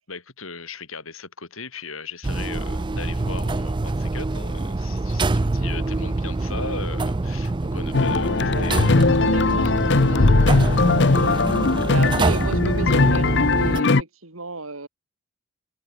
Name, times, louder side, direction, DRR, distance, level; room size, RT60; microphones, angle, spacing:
voice 1, 0.1-9.1, left 4 dB, 70° left, 6.5 m, -37 dB
sound 1, 2.2-13.8, right 2 dB, 20° right, 0.4 m, -25 dB
sound 2, 7.9-14.0, left 3 dB, 55° left, 0.9 m, -19 dB
voice 2, 9.0-11.3 11.9-14.9, right 2 dB, 75° right, 4.8 m, -33 dB
head